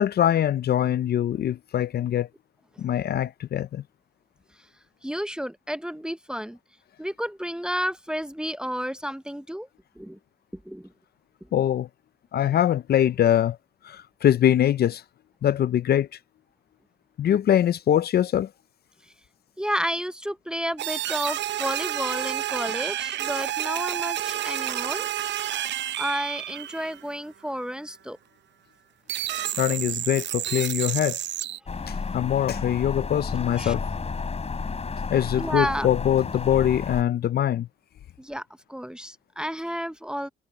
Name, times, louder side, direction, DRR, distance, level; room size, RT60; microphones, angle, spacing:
voice 1, 0.0-2.3 2.8-3.8 11.5-11.9 12.3-13.6 13.8-15.0 15.4-16.1 17.2-18.5 29.6-31.2 31.9-33.8 35.1-37.7, left 10 dB, 55° left, 0.5 m, -23 dB
voice 2, 5.0-6.6 7.0-9.7 10.0-10.2 10.5-10.9 19.6-25.1 25.3-25.5 26.0-28.2 29.4-29.5 31.9-32.2 33.6-33.7 35.4-35.9 38.2-40.3, equal, 5° right, 0.6 m, -31 dB
sound 1, 20.8-27.1 29.1-31.6, right 12 dB, 65° right, 0.6 m, -30 dB
sound 2, 31.7-37.0, left 4 dB, 30° left, 4.2 m, -32 dB
cardioid pair, 90°, 20 cm